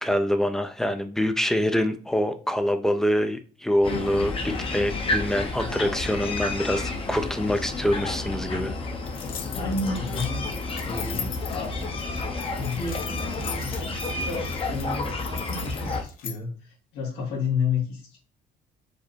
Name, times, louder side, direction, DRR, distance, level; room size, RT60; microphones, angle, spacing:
voice 1, 0.0-8.7, equal, 5° left, 8 dB, 0.5 m, -25 dB
sound 1, 3.8-16.0, left 3 dB, 35° left, 0.8 m, -30 dB
sound 2, 9.1-16.4, left 8 dB, 60° left, 0.9 m, -39 dB
voice 2, 9.5-10.5 10.8-11.9 12.6-18.2, left 4 dB, 90° left, -1 dB, 2.2 m, -31 dB
5.0 x 2.1 x 4.5 m, 0.39 s
cardioid pair, 110°, 17 cm